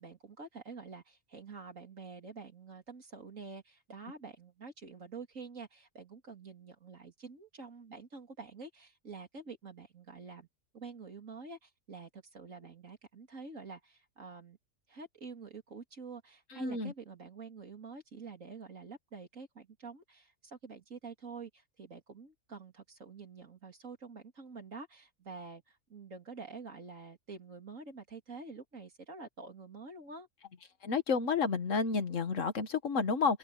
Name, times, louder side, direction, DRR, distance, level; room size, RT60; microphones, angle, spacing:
voice 1, 0.0-10.5 10.7-14.6 14.9-30.3, right 4 dB, 85° right, 3.5 m, -48 dB
voice 2, 16.5-16.9 30.8-33.4, left 5 dB, 75° left, 1.9 m, -30 dB
open air
omnidirectional pair, 1.3 m